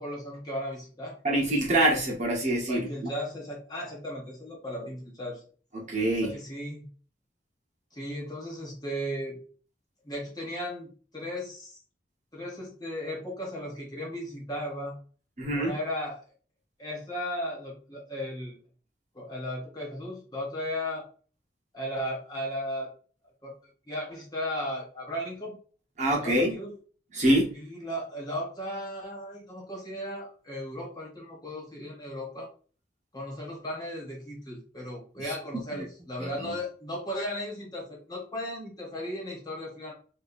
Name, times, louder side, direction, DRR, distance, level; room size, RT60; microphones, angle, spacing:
voice 1, 0.0-1.2 2.7-5.4 6.2-6.9 7.9-9.4 10.0-11.8 12.3-14.9 15.5-16.2 16.8-18.6 19.1-21.0 21.7-22.9 23.4-25.6 26.2-26.7 27.5-32.5 33.1-39.9, equal, 25° left, -3 dB, 1.6 m, -36 dB
voice 2, 1.2-3.1 5.7-6.4 15.4-15.7 26.0-26.6 27.1-27.5 35.2-35.8 36.2-36.5, right 1 dB, 45° right, -2 dB, 1.3 m, -26 dB
4.4 x 2.7 x 2.6 m, 0.40 s
head